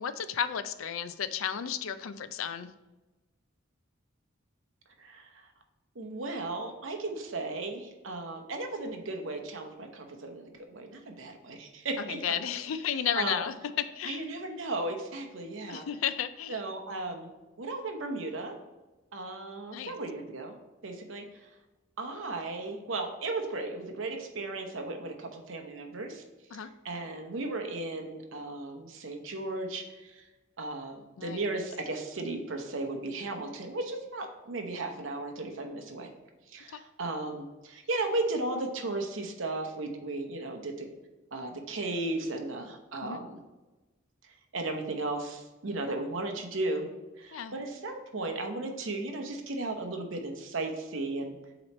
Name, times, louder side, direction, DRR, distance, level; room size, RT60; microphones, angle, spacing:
voice 1, 0.0-2.7 12.0-13.5 14.0-14.3 15.7-16.6 19.7-20.0 26.5-26.7 31.2-31.4 36.7-36.8 43.0-43.2 47.3-47.6, left 8 dB, 75° left, 12 dB, 0.4 m, -33 dB
voice 2, 6.0-12.4 13.2-13.4 14.0-15.8 16.5-17.3 17.6-18.6 19.1-20.6 20.8-21.2 22.0-26.2 26.8-29.8 30.1-30.2 30.6-36.1 36.5-40.9 41.3-43.4 44.5-46.9 47.2-51.4, right 2 dB, 65° right, 4 dB, 0.9 m, -35 dB
7.7 x 3.0 x 4.2 m, 1.1 s
head